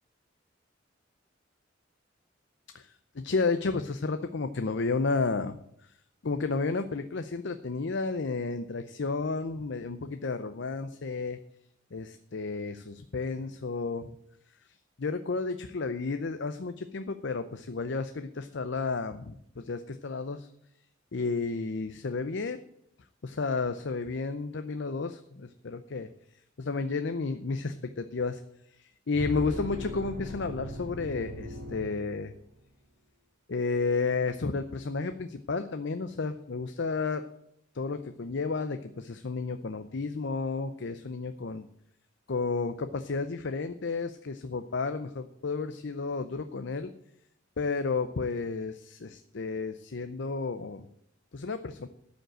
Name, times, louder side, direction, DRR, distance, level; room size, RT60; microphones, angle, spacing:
voice 1, 2.7-5.5 6.2-11.4 11.9-14.1 15.0-20.5 21.1-22.6 23.2-26.1 26.6-28.4 28.8-32.3 33.5-37.2 37.7-41.6 42.3-46.9 47.6-50.8 51.3-51.9, left 4 dB, 65° left, 9 dB, 0.6 m, -32 dB
sound 1, 29.1-32.6, equal, 55° right, 3.2 m, -39 dB
12.5 x 5.3 x 8.9 m, 0.71 s
head